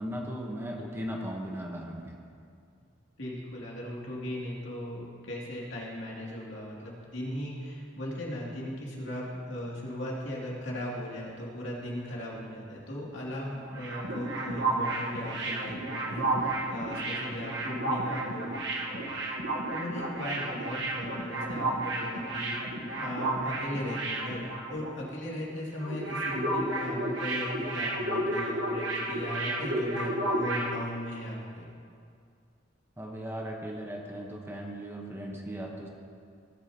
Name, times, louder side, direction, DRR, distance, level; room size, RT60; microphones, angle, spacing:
voice 1, 0.0-2.2 33.0-35.9, equal, 15° right, 0 dB, 1.0 m, -37 dB
voice 2, 3.2-18.6 18.9-19.1 19.7-24.4 24.7-31.7, left 1 dB, 70° left, -4 dB, 2.5 m, -37 dB
sound 1, 13.5-25.1 25.3-25.5 25.8-30.8, right 2 dB, 65° right, 1.3 m, -32 dB
18.0 x 8.7 x 2.9 m, 2.3 s
head